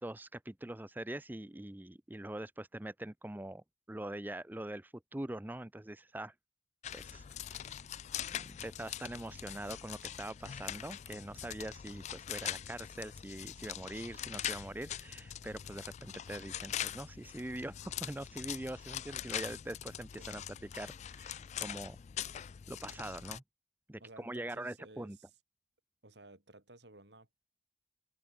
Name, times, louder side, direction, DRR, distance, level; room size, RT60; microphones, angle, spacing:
voice 1, 0.0-6.3 6.9-7.6 8.3-20.4 20.7-22.0 22.7-23.4 23.9-25.2, right 1 dB, 10° right, 0.5 m, -43 dB
sound 1, 6.8-23.4, left 10 dB, 40° left, 0.3 m, -43 dB
voice 2, 24.0-25.3 26.0-27.5, right 2 dB, 75° right, 5.3 m, -56 dB
open air
head